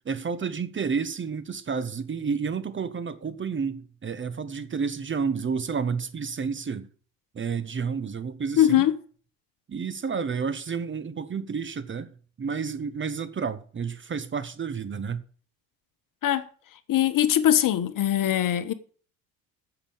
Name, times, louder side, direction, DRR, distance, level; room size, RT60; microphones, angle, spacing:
voice 1, 0.0-6.9 7.3-8.9 9.7-12.1 12.4-15.2, right 5 dB, 25° right, 1.1 m, -30 dB
voice 2, 8.6-9.0 16.2-16.5 16.9-18.7, left 11 dB, 45° left, 1.3 m, -21 dB
9.0 x 7.1 x 8.8 m
hypercardioid pair, 70°, 44 cm